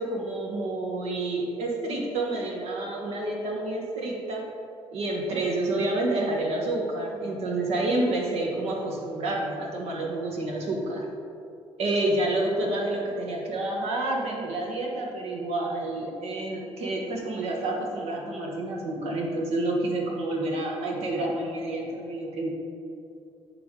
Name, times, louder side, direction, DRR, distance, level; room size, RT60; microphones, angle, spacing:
voice 1, 0.0-4.4 4.9-11.1 11.8-22.5, right 2 dB, 75° right, -1 dB, 1.2 m, -29 dB
9.0 x 3.4 x 3.7 m, 2.6 s
cardioid pair, 75°, 11 cm